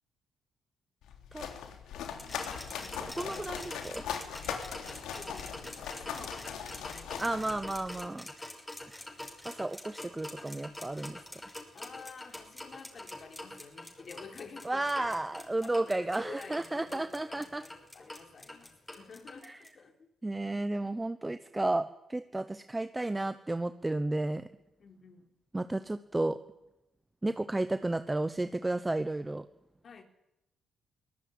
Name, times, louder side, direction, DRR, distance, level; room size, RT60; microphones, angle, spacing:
sound 1, 1.0-8.0, left 8 dB, 90° left, 3.6 m, -40 dB
voice 1, 1.6-2.5 2.8-3.2 4.7-7.6 11.7-19.9 24.8-25.3 29.8-30.0, left 5 dB, 45° left, 6 dB, 3.6 m, -51 dB
sound 2, 2.2-19.7, left 1 dB, 10° left, 5.6 m, -45 dB
voice 2, 2.9-4.0 7.2-8.3 9.4-11.4 14.6-17.6 19.4-19.6 20.2-24.5 25.5-26.4 27.2-29.5, right 2 dB, 15° right, 11 dB, 1.0 m, -33 dB
23.0 x 18.5 x 9.5 m, 0.88 s
cardioid pair, 105°, 0 cm